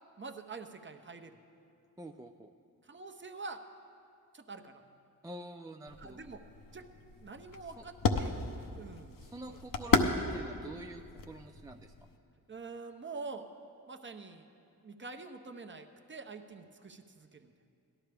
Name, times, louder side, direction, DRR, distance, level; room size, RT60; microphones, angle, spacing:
voice 1, 0.2-1.4 2.8-3.6 4.3-4.8 6.0-6.4 6.7-6.9 7.2-8.4 8.8-9.2 9.5-9.6 10.2-10.3 12.5-13.5 13.9-14.5 14.8-17.5, right 4 dB, 30° right, 5 dB, 0.8 m, -46 dB
voice 2, 2.0-2.5 5.2-6.2 7.8-7.9 9.2-11.9, right 1 dB, 10° right, 3 dB, 0.4 m, -47 dB
sound 1, 5.9-12.2, left 4 dB, 55° left, 0.8 m, -34 dB
17.0 x 12.0 x 3.4 m, 2.5 s
cardioid pair, 65°, 40 cm